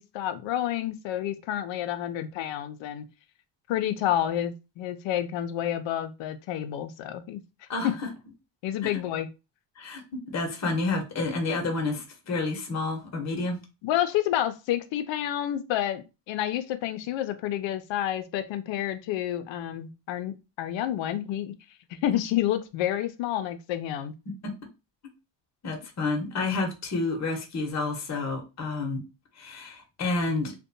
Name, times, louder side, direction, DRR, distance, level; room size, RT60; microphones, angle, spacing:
voice 1, 0.0-3.1 3.7-7.4 7.8-8.0 8.6-9.3 13.8-21.5 21.9-24.2, left 11 dB, 75° left, 0.5 m, -29 dB
voice 2, 10.3-13.6 24.4-24.5 25.6-29.0 29.4-30.5, left 3 dB, 35° left, 0.9 m, -29 dB
2.5 x 2.2 x 2.6 m
supercardioid pair, 75°, 45 cm